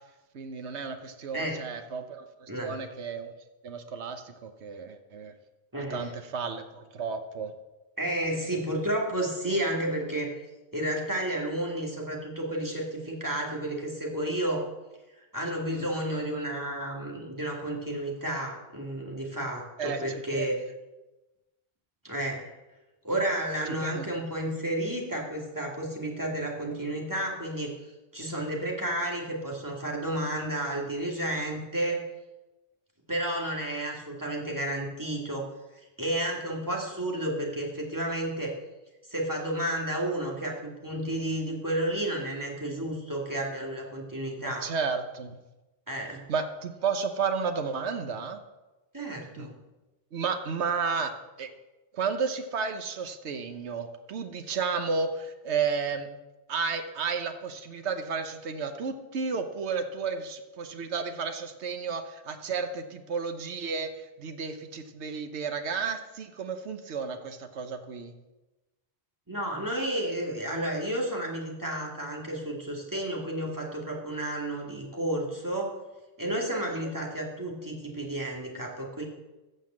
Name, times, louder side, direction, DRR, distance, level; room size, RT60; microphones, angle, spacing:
voice 1, 0.3-3.3 3.6-5.3 5.7-7.5 15.8-15.9 19.8-20.5 23.7-24.1 44.4-45.4 46.3-48.4 49.4-49.5 50.1-51.1 51.4-51.5 51.9-56.1 56.5-68.1 76.3-76.4 76.8-76.9, right 5 dB, 80° right, 7 dB, 1.2 m, -32 dB
voice 2, 5.7-6.1 8.0-10.3 10.7-14.7 15.3-20.6 22.0-22.4 23.0-27.7 28.1-32.0 33.1-35.5 36.0-38.5 39.1-44.7 45.9-46.2 48.9-49.5 69.3-75.8 76.2-79.0, right 1 dB, 15° right, -2 dB, 2.4 m, -31 dB
15.5 x 5.6 x 7.6 m, 1.1 s
omnidirectional pair, 1.1 m